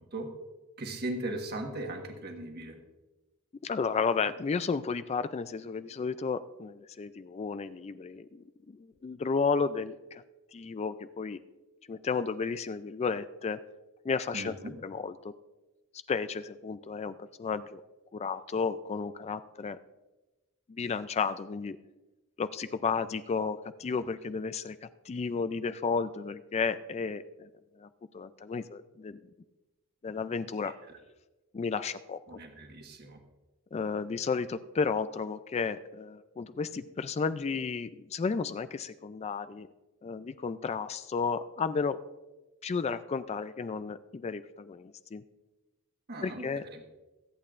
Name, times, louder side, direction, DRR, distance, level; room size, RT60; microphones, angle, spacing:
voice 1, 0.8-2.8 14.3-14.7 32.3-33.2 46.1-46.8, right 1 dB, 45° right, 3 dB, 1.4 m, -38 dB
voice 2, 3.6-10.2 10.5-11.4 11.9-13.6 14.0-14.6 14.8-15.3 16.1-17.8 18.1-19.8 20.7-21.8 22.4-27.5 27.8-27.9 28.1-29.2 30.0-30.7 31.5-32.2 33.7-39.7 40.0-42.0 42.6-45.2 46.2-46.6, left 5 dB, 30° left, 13 dB, 0.3 m, -33 dB
22.5 x 8.7 x 2.5 m, 1.1 s
head